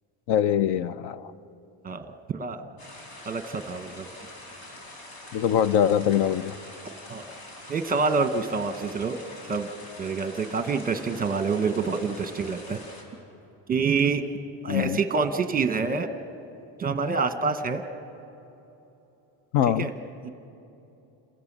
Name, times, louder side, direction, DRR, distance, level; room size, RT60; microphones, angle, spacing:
voice 1, 0.3-1.3 5.3-6.5 14.7-15.0 19.5-19.9, left 10 dB, 60° left, 16 dB, 0.6 m, -23 dB
voice 2, 1.8-2.6 3.3-4.1 7.1-7.2 7.7-9.2 9.5-9.7 10.0-12.8 13.7-14.2 14.6-16.1 16.8-17.8 19.8-19.9 20.2-20.3, right 4 dB, 20° right, 8 dB, 1.0 m, -27 dB
sound 1, 2.8-13.0, left 1 dB, 85° left, 5.1 m, -45 dB
28.0 x 16.5 x 7.4 m, 3.0 s
cardioid pair, 160°, 48 cm